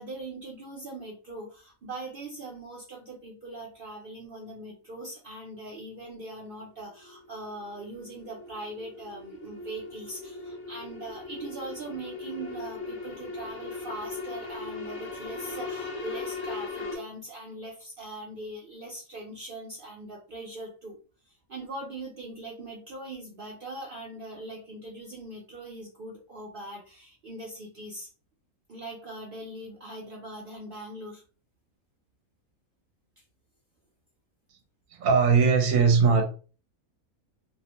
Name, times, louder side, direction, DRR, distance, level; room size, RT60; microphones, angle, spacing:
voice 1, 0.0-21.0 21.3-28.1 28.7-31.2, right 2 dB, 55° right, -2 dB, 0.6 m, -41 dB
sound 1, 6.4-17.0, left 3 dB, 60° left, 0.8 m, -39 dB
voice 2, 34.9-36.2, right 5 dB, 75° right, 3 dB, 1.0 m, -20 dB
2.6 x 2.0 x 2.9 m, 0.36 s
omnidirectional pair, 1.5 m